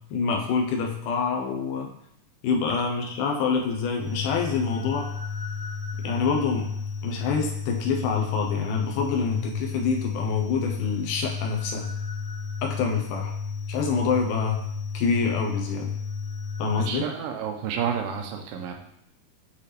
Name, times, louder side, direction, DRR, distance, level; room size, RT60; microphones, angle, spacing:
voice 1, 0.0-1.9 2.4-5.1 6.0-6.7 7.0-11.9 12.6-13.3 13.7-14.6 14.9-16.0 16.6-17.1, left 5 dB, 70° left, 1 dB, 2.1 m, -26 dB
sound 1, 4.0-16.9, left 5 dB, 40° left, 0.9 m, -33 dB
voice 2, 16.8-18.7, right 8 dB, 80° right, 4 dB, 2.3 m, -30 dB
8.3 x 4.1 x 3.4 m, 0.73 s
omnidirectional pair, 4.4 m